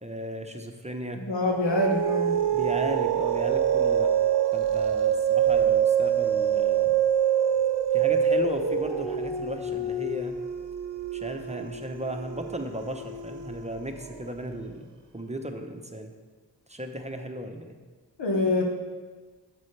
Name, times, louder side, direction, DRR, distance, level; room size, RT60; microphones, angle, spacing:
voice 1, 0.0-1.2 2.5-4.1 4.5-6.9 7.9-10.3 11.1-14.9 15.1-16.1 16.7-17.8, right 1 dB, 15° right, 5 dB, 0.9 m, -35 dB
voice 2, 1.1-2.4 18.2-18.6, left 1 dB, 85° left, 0 dB, 1.3 m, -25 dB
sound 1, 1.5-14.3, right 8 dB, 80° right, 0.8 m, -25 dB
9.4 x 7.7 x 3.3 m, 1.4 s
cardioid pair, 40°, 42 cm